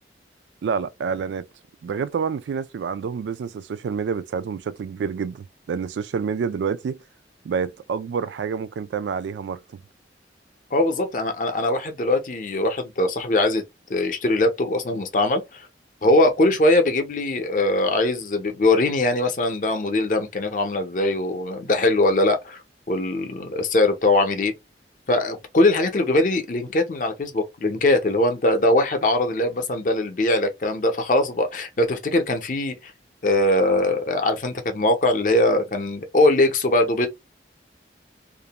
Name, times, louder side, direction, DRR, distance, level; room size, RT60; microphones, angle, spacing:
voice 1, 0.6-1.5 1.8-7.0 7.4-9.8, right 6 dB, 80° right, 0.3 m, -28 dB
voice 2, 10.7-13.6 13.9-15.7 16.0-22.6 22.9-24.5 25.1-32.9 33.2-37.1, left 2 dB, 45° left, 0.6 m, -21 dB
2.5 x 2.1 x 2.8 m
head